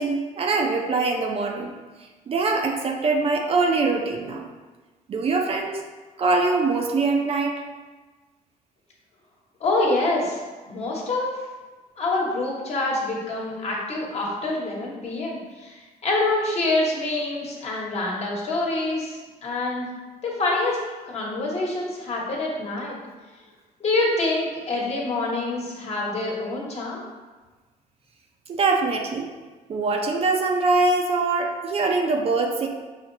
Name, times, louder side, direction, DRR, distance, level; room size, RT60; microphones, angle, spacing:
voice 1, 0.0-1.7 2.3-4.5 5.1-5.8 6.2-7.6 28.5-29.3 29.7-32.7, right 3 dB, 40° right, 2 dB, 0.5 m, -23 dB
voice 2, 9.6-10.4 10.7-11.3 12.0-19.9 20.2-20.8 21.1-23.0 23.8-27.0, left 2 dB, 45° left, -3 dB, 1.1 m, -26 dB
5.9 x 2.8 x 2.7 m, 1.3 s
cardioid pair, 120°, 15 cm